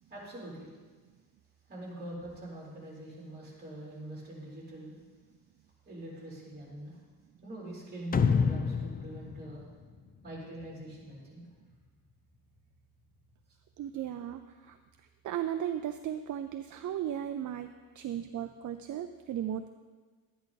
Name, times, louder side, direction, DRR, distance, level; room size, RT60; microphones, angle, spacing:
voice 1, 0.1-0.7 1.7-4.9 5.8-7.0 7.4-9.6 10.2-11.4 14.6-14.7, right 1 dB, 30° right, -4 dB, 3.8 m, -44 dB
sound 1, 8.1-10.6, left 5 dB, 25° left, 0.4 m, -29 dB
voice 2, 13.8-14.8 15.2-19.7, right 10 dB, 60° right, 8 dB, 0.5 m, -36 dB
12.0 x 10.0 x 4.1 m, 1.4 s
wide cardioid pair, 155°, 35 cm